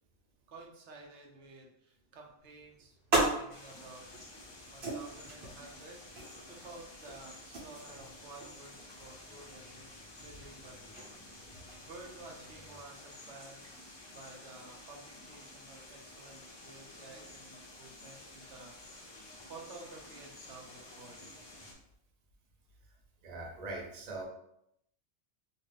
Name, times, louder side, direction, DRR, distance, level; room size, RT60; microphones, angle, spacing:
voice 1, 0.5-10.9 11.7-19.2 19.5-21.5, right 3 dB, 90° right, 0 dB, 1.0 m, -53 dB
sound 1, 2.4-12.8, right 2 dB, 70° right, 1.2 m, -39 dB
sound 2, 3.5-21.7, left 2 dB, 40° left, 0.3 m, -52 dB
voice 2, 23.2-24.2, right 2 dB, 45° right, -1 dB, 0.7 m, -41 dB
2.5 x 2.4 x 3.2 m, 0.77 s
omnidirectional pair, 1.1 m